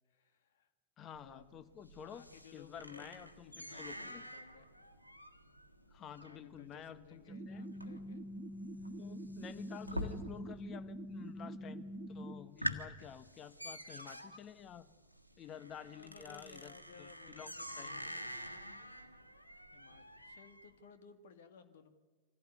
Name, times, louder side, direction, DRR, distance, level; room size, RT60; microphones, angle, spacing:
voice 1, 0.1-0.7 1.2-1.5 1.9-4.7 6.2-8.2 8.8-9.1 15.9-18.2 19.7-21.9, left 6 dB, 60° left, 9 dB, 2.1 m, -59 dB
voice 2, 1.0-2.2 2.5-4.2 5.9-7.6 9.0-14.9 15.4-16.7 17.0-17.9, left 8 dB, 30° left, 13 dB, 1.3 m, -51 dB
sound 1, 1.1-10.7 11.0-11.6 12.0-12.1 12.4-20.7, equal, 90° right, 1.6 m, -46 dB
sound 2, 7.3-12.4, equal, 25° right, 1.8 m, -45 dB
25.0 x 16.0 x 9.6 m, 1.3 s
figure-of-eight pair, 90°, 0 cm